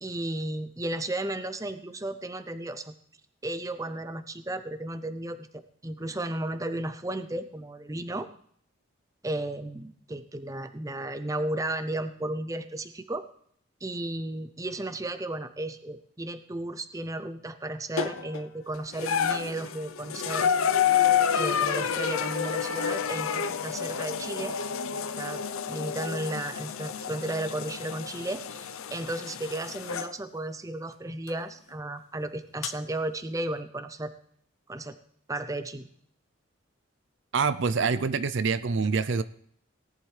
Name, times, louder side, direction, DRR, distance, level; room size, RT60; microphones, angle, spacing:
voice 1, 0.0-2.9 3.4-5.5 5.8-8.3 9.2-13.3 13.8-20.5 21.3-24.6 25.2-34.1 34.7-35.0 35.3-35.9, right 1 dB, 15° right, 11 dB, 0.6 m, -34 dB
sound 1, 18.0-18.4 18.9-30.1 31.3-31.4 32.6-32.7, left 8 dB, 80° left, 0.6 m, -29 dB
voice 2, 37.3-39.2, right 5 dB, 60° right, 14 dB, 0.5 m, -26 dB
18.0 x 11.0 x 3.3 m, 0.62 s
head